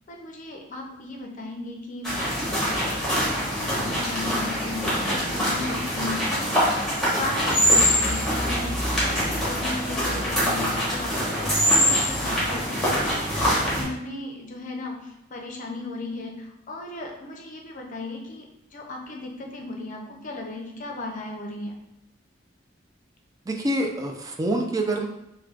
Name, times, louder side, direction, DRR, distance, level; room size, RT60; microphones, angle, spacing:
voice 1, 0.1-21.7, left 2 dB, 40° left, 1 dB, 0.5 m, -36 dB
sound 1, 2.0-13.8, equal, ahead, 1.2 m, -24 dB
voice 2, 23.5-25.1, right 1 dB, 20° right, 2 dB, 0.3 m, -26 dB
4.6 x 2.2 x 2.4 m, 0.84 s
head